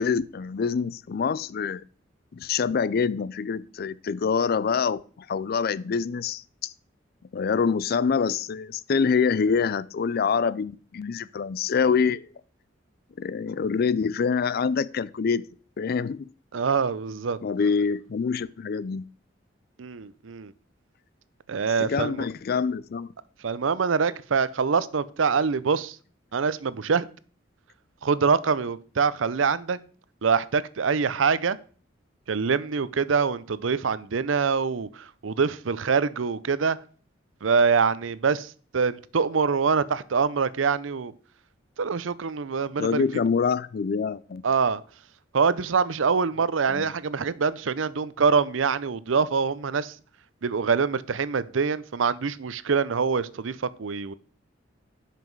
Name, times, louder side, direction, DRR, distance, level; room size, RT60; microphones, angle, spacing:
voice 1, 0.0-1.8 2.3-6.7 7.3-12.3 13.2-15.4 15.8-16.3 17.4-19.1 21.8-23.1 42.8-44.4 46.7-46.9, left 5 dB, 50° left, 0.4 m, -26 dB
voice 2, 16.5-17.4 19.8-20.5 21.5-22.3 23.4-26.0 26.3-27.1 28.0-29.8 30.2-31.6 32.3-36.8 37.4-41.1 41.8-43.0 44.4-44.8 45.3-50.0 50.4-54.1, right 5 dB, 85° right, 0.6 m, -25 dB
10.5 x 5.9 x 4.6 m
head